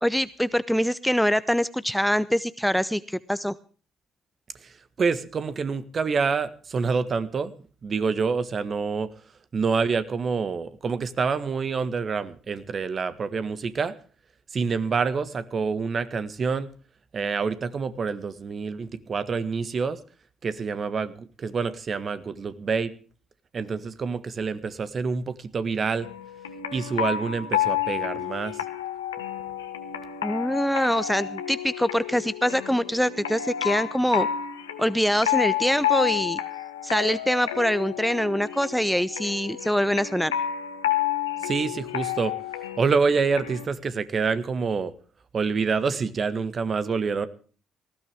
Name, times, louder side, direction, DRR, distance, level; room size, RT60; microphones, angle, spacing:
voice 1, 0.0-3.5 30.2-34.3 34.8-36.4 36.8-40.3, equal, ahead, 16 dB, 0.7 m, -24 dB
voice 2, 5.0-7.5 7.8-9.1 9.5-13.9 14.5-16.7 17.1-20.0 20.4-22.9 23.5-26.1 26.7-28.6 41.4-42.3 42.8-44.9 45.3-47.3, right 5 dB, 45° right, 13 dB, 1.6 m, -27 dB
sound 1, 26.0-43.7, left 11 dB, 90° left, 1.4 m, -30 dB
19.0 x 15.5 x 3.5 m, 0.39 s
hypercardioid pair, 50°, 0 cm